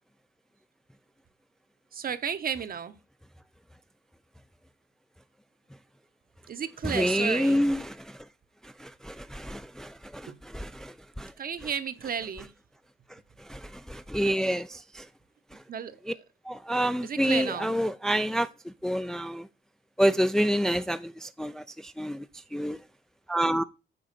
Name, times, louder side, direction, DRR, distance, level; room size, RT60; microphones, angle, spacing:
voice 1, 1.9-3.0 6.5-7.6 10.3-10.4 11.4-12.5 15.7-16.0 17.0-17.7, right 7 dB, 45° right, 1.0 m, -33 dB
voice 2, 6.8-8.2 8.6-11.3 13.4-15.1 15.5-15.6 16.1-16.2 16.5-19.5 20.0-22.3 22.5-22.8 23.3-23.6, equal, 5° left, 0.4 m, -28 dB
8.6 x 3.7 x 6.6 m
cardioid pair, 90°, 20 cm